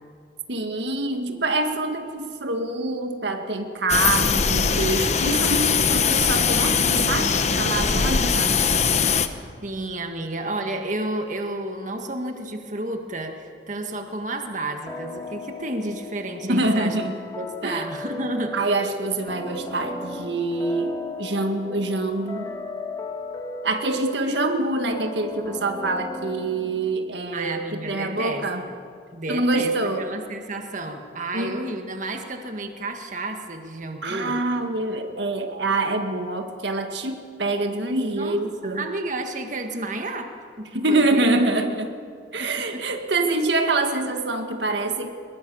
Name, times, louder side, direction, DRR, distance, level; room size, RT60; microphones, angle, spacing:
voice 1, 0.5-8.5 16.4-17.2 17.6-17.8 18.5-22.5 23.6-28.6 29.3-30.1 31.3-31.6 34.0-38.9 40.7-41.9 42.3-45.1, right 2 dB, 70° right, 5 dB, 1.8 m, -25 dB
sound 1, 3.9-9.3, left 6 dB, 35° left, 1.0 m, -21 dB
voice 2, 7.9-8.6 9.6-17.0 17.4-18.5 27.3-28.7 29.1-34.4 38.1-38.4 38.6-40.3 40.6-41.3 42.4-42.8, right 2 dB, 45° right, 4 dB, 1.8 m, -31 dB
sound 2, 14.9-27.3, left 2 dB, 20° left, 2.5 m, -36 dB
22.5 x 21.5 x 7.1 m, 2.2 s
head